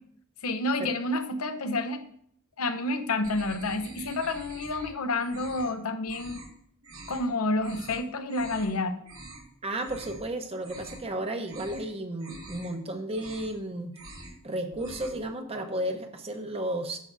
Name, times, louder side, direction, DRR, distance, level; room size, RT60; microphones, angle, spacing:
voice 1, 0.4-2.0 2.6-6.4 7.1-8.9, left 2 dB, 85° left, 7 dB, 0.8 m, -29 dB
sound 1, 3.2-4.9 5.2-5.7 6.1-6.5 6.8-7.2 7.6-8.0 8.3-8.7 9.0-9.5 9.8-10.2 10.5-11.1 11.4-11.9 12.2-12.7 13.0-13.6 13.9-14.4 14.7-15.2, right 2 dB, 80° right, 2.3 m, -46 dB
voice 2, 9.6-13.9 14.4-17.0, right 1 dB, 30° right, 5 dB, 0.9 m, -33 dB
10.5 x 7.4 x 2.7 m, 0.66 s
head